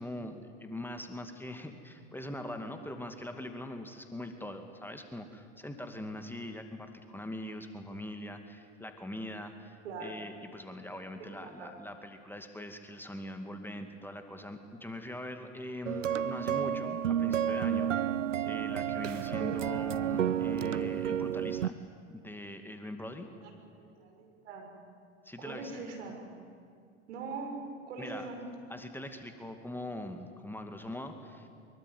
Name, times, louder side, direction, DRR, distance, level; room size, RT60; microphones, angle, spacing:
voice 1, 0.0-18.2 18.5-21.8 22.1-23.3 25.2-25.8 28.0-28.3 28.7-31.5, left 1 dB, 5° left, 6 dB, 2.3 m, -42 dB
sound 1, 15.9-21.7, right 10 dB, 90° right, 0.7 m, -31 dB
voice 2, 23.4-24.7 25.4-26.2 27.1-28.4, right 4 dB, 70° right, 3 dB, 6.5 m, -42 dB
24.0 x 23.0 x 9.6 m, 2.4 s
hypercardioid pair, 90°, 36 cm